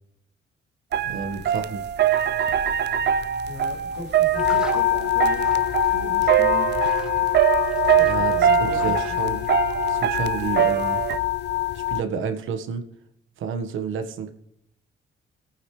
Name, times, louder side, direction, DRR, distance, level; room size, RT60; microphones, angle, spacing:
sound 1, 0.9-11.2, right 10 dB, 60° right, 0.6 m, -23 dB
voice 1, 1.0-1.8 8.0-8.3 8.6-9.4 9.9-11.0 11.7-12.8 13.4-14.3, right 6 dB, 80° right, 7 dB, 1.5 m, -30 dB
voice 2, 3.5-5.6 5.9-6.7 7.9-8.9, left 3 dB, 85° left, 1 dB, 3.0 m, -39 dB
sound 2, 3.7-11.2, equal, 5° right, 2.3 m, -45 dB
sound 3, 4.3-12.0, left 15 dB, 60° left, 0.5 m, -24 dB
22.0 x 9.0 x 3.2 m, 0.77 s
cardioid pair, 90°, 20 cm